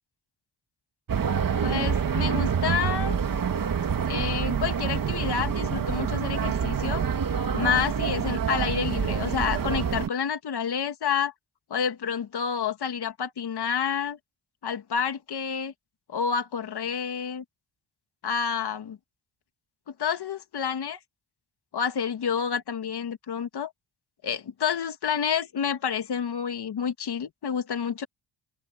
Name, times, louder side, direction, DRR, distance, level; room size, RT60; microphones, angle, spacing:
sound 1, 1.1-10.1, right 7 dB, 50° right, 1.9 m, -27 dB
voice 1, 1.6-3.2 4.0-7.0 7.5-11.3 11.7-14.2 14.6-15.7 16.1-17.4 18.2-19.0 20.0-21.0 21.7-23.7 24.2-28.1, left 7 dB, 65° left, 2.0 m, -29 dB
open air
cardioid pair, 95°, 43 cm